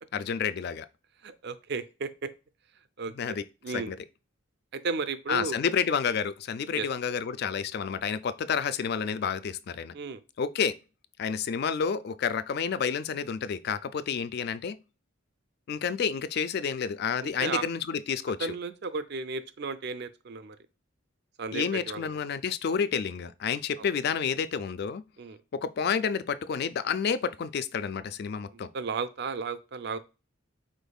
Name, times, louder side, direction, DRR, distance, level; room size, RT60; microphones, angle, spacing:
voice 1, 0.1-0.9 3.2-4.0 5.3-9.9 10.4-10.8 11.2-14.8 15.7-18.5 21.5-25.0 25.5-28.7, left 6 dB, 55° left, 0.3 m, -30 dB
voice 2, 1.2-2.3 3.0-3.4 3.6-3.9 4.7-5.6 6.7-6.9 9.9-10.2 17.2-17.7 18.4-20.6 21.4-22.2 25.2-25.4 28.5-30.0, right 4 dB, 55° right, 0.5 m, -34 dB
5.2 x 4.0 x 2.3 m
head